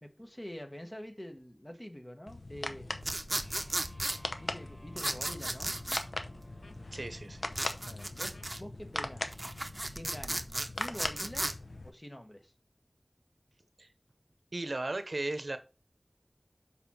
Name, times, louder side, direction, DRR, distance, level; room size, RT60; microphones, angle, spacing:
voice 1, 0.0-2.9 4.4-5.8 7.9-9.4 9.9-10.5 10.7-11.6 11.8-12.5, equal, 30° left, 1.2 m, -46 dB
sound 1, 2.3-11.9, left 2 dB, 85° left, 0.6 m, -41 dB
sound 2, 3.0-4.2 5.0-6.0 7.5-8.6 9.2-11.5, right 1 dB, 45° right, 0.6 m, -35 dB
sound 3, 3.4-9.8, equal, ahead, 2.4 m, -55 dB
voice 2, 6.9-7.4 13.8-13.9 14.5-15.6, right 2 dB, 80° right, 0.7 m, -36 dB
7.0 x 4.3 x 4.3 m
wide cardioid pair, 45°, 0 cm